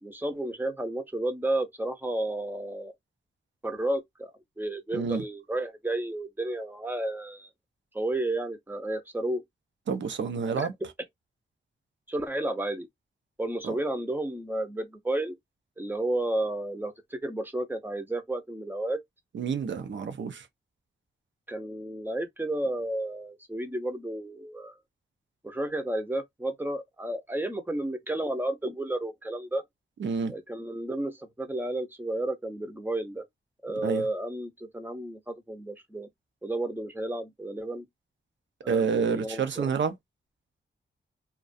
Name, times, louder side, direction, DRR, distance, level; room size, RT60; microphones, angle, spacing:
voice 1, 0.0-2.9 3.6-4.3 4.6-7.5 7.9-9.4 10.6-10.7 12.1-12.9 13.4-15.4 15.8-19.0 21.5-24.8 25.4-29.6 30.3-33.2 33.6-36.1 36.4-37.9 38.6-39.7, right 1 dB, 10° right, 0.6 m, -32 dB
voice 2, 4.9-5.2 9.9-10.7 13.6-13.8 19.3-20.5 30.0-30.3 33.8-34.1 38.7-39.9, right 6 dB, 70° right, 0.6 m, -28 dB
2.3 x 2.2 x 2.5 m
wide cardioid pair, 90°, 20 cm